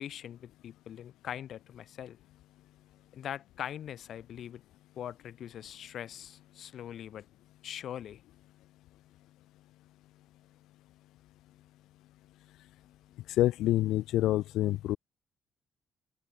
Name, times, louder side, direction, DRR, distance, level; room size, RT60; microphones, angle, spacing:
voice 1, 0.0-2.2 3.1-4.6 5.0-7.2 7.6-8.2, left 10 dB, 70° left, 4.2 m, -42 dB
voice 2, 13.3-15.0, left 15 dB, 90° left, 3.2 m, -27 dB
open air
cardioid pair, 90°, 0 cm